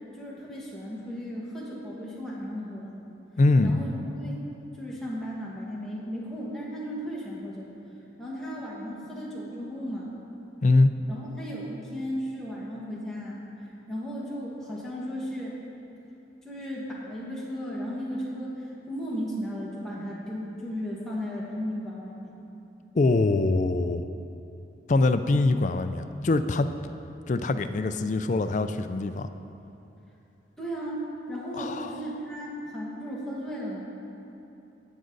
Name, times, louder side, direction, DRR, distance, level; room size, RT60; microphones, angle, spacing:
voice 1, 0.2-2.9 3.6-4.4 4.8-7.6 8.2-10.1 11.1-13.4 13.9-15.6 16.4-22.3 30.6-31.0 31.3-33.8, equal, 5° left, -7 dB, 1.7 m, -35 dB
voice 2, 3.4-3.7 10.6-10.9 22.9-24.1 24.9-26.7 27.3-29.3 31.5-32.0, left 2 dB, 40° left, 9 dB, 0.4 m, -23 dB
17.0 x 6.4 x 3.9 m, 2.9 s
head